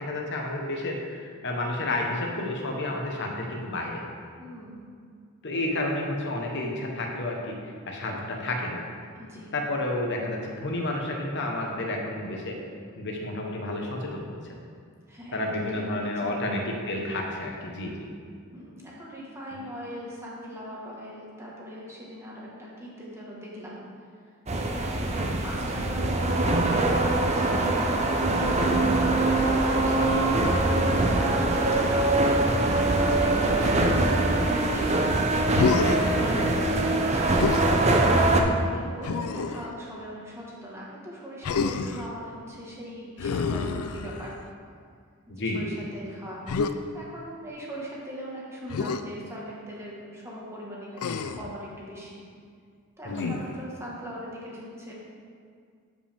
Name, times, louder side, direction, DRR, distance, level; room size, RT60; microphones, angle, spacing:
voice 1, 0.0-4.0 5.4-8.8 9.5-12.6 13.0-14.3 15.3-18.1 30.0-30.2 33.2-33.3 36.8-36.9 45.3-45.7 53.0-53.3, left 1 dB, 50° left, 1 dB, 1.1 m, -31 dB
voice 2, 4.4-4.9 9.1-9.6 15.1-16.4 18.5-23.8 24.7-28.2 29.1-35.2 36.1-37.5 38.2-44.3 45.3-46.4 46.9-52.2 53.0-54.9, equal, 10° right, -5 dB, 1.4 m, -40 dB
sound 1, 24.5-38.4, right 2 dB, 30° right, 0.6 m, -23 dB
Human voice, 35.5-36.1 37.3-37.7 39.0-39.7 41.4-42.1 43.2-44.4 46.5-46.7 48.7-49.0 51.0-51.5 53.1-53.6, left 5 dB, 75° left, 0.4 m, -28 dB
12.5 x 5.1 x 3.5 m, 2.2 s
head